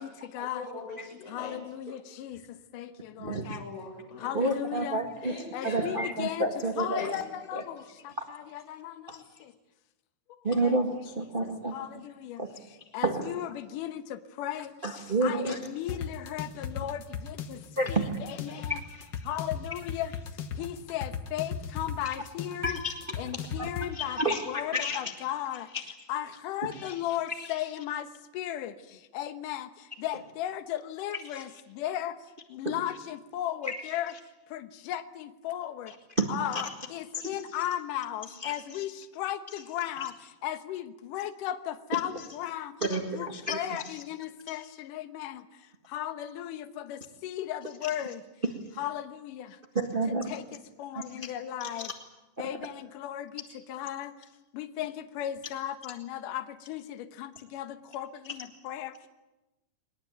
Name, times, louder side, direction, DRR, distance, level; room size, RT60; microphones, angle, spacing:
voice 1, 0.0-0.7 1.3-3.6 4.2-5.0 5.5-6.5 6.8-9.5 10.3-10.8 11.4-12.4 12.9-14.7 15.2-17.6 17.9-18.8 19.2-22.8 23.2-25.7 26.1-28.1 28.3-34.1 34.5-35.9 36.3-40.1 40.4-42.8 43.1-45.5 45.9-48.2 48.8-49.6 50.3-51.9 52.4-54.3 54.5-59.1, left 12 dB, 70° left, 10 dB, 2.6 m, -36 dB
voice 2, 0.5-1.6 3.5-4.5 5.2-6.1 7.0-7.2, left 2 dB, 55° left, 0 dB, 7.6 m, -41 dB
voice 3, 3.2-3.6 4.3-5.3 5.6-7.1 7.5-7.6 8.2-8.3 9.1-9.2 10.4-11.8 12.4-12.5 13.0-13.3 14.8-15.6 17.8-18.0 18.5-18.7 18.9-19.0 22.6-22.9 23.6-23.7 23.9-25.0 26.7-27.0 27.4-27.5 31.3-31.4 32.6-32.8 33.6-33.7 36.2-36.6 37.1-37.3 38.4-38.5 42.9-43.6 49.7-50.3 50.9-51.3 51.8-51.9 52.4-52.5, right 2 dB, 30° right, 3 dB, 1.0 m, -30 dB
sound 1, 15.9-23.9, left 7 dB, 90° left, 1.0 m, -37 dB
22.5 x 19.5 x 9.3 m, 1.0 s
omnidirectional pair, 4.1 m